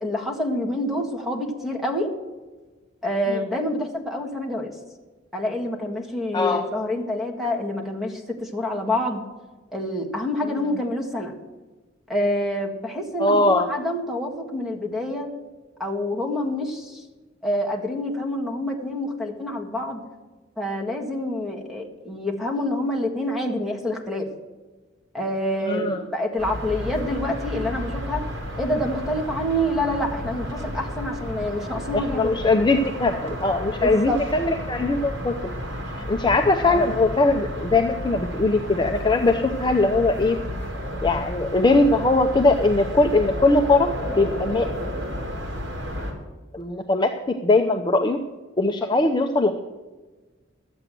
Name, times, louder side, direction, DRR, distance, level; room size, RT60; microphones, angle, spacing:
voice 1, 0.0-2.1 3.0-4.7 5.3-9.2 9.7-11.3 12.1-15.3 15.8-17.0 17.4-20.0 20.6-24.3 25.1-28.2 28.6-32.4 33.8-34.2 36.6-36.9, left 1 dB, ahead, 1 dB, 1.7 m, -27 dB
voice 2, 6.3-6.7 13.2-13.7 25.6-26.0 31.9-35.3 35.9-40.4 41.0-44.7 46.5-47.1 47.4-48.2 48.6-49.6, left 2 dB, 20° left, 4 dB, 0.6 m, -20 dB
sound 1, 26.4-46.1, equal, 65° right, 2.9 m, -32 dB
12.0 x 8.0 x 7.5 m, 1.3 s
head